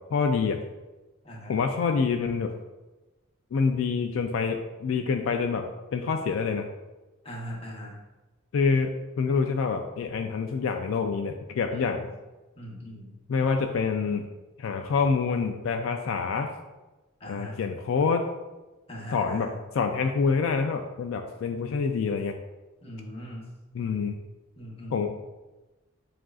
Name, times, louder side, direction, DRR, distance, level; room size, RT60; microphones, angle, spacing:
voice 1, 0.1-0.6 1.5-2.5 3.5-5.6 5.9-6.7 8.5-12.0 13.3-14.2 14.6-16.5 17.3-18.3 19.1-19.5 19.7-22.3 23.7-24.2 24.9-25.1, left 5 dB, 75° left, 5 dB, 0.3 m, -26 dB
voice 2, 1.2-1.6 7.2-8.0 11.7-12.1 12.6-13.1 17.2-17.6 18.9-19.6 22.8-23.5 24.6-25.1, equal, 30° left, -3 dB, 0.9 m, -40 dB
7.3 x 2.5 x 2.3 m, 1.1 s
head